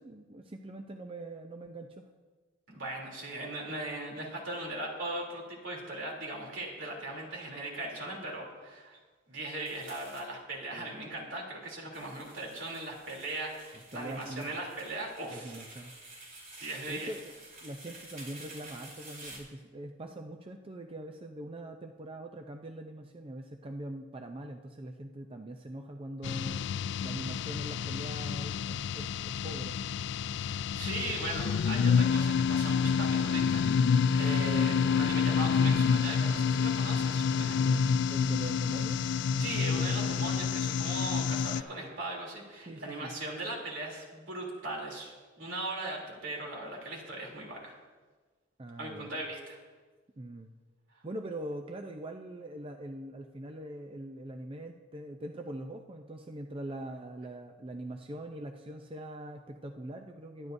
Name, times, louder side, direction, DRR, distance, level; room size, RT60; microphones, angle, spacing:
voice 1, 0.0-2.1 10.7-10.9 13.7-14.6 15.3-15.9 16.9-17.3 17.6-26.6 27.0-29.8 37.6-39.5 42.7-43.1 48.6-49.1 50.2-50.5 51.0-60.5, right 1 dB, 30° right, 4 dB, 0.5 m, -42 dB
voice 2, 2.7-9.0 9.3-15.6 16.6-17.1 30.3-37.8 39.4-47.7 48.8-49.6, right 2 dB, 75° right, -2 dB, 3.2 m, -39 dB
sound 1, 9.7-10.2 11.9-19.4, right 2 dB, 45° right, 3.7 m, -50 dB
sound 2, 26.2-41.6, left 6 dB, 60° left, 0.3 m, -28 dB
22.0 x 11.0 x 2.7 m, 1.4 s
head